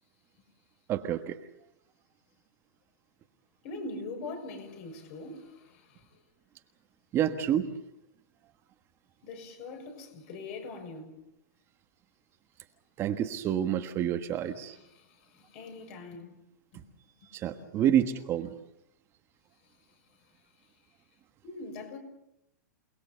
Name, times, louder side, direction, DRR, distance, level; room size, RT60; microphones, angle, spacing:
voice 1, 0.9-1.4 7.1-7.7 13.0-14.7 17.3-18.5, right 10 dB, 25° right, 1.4 m, -28 dB
voice 2, 3.6-6.2 9.2-11.1 14.6-16.4 16.7-16.8 17.2-17.3 17.6-17.7 19.6-20.7 21.4-22.0, left 3 dB, 45° left, 6.6 m, -43 dB
28.5 x 20.0 x 6.9 m
hypercardioid pair, 150°, 10 cm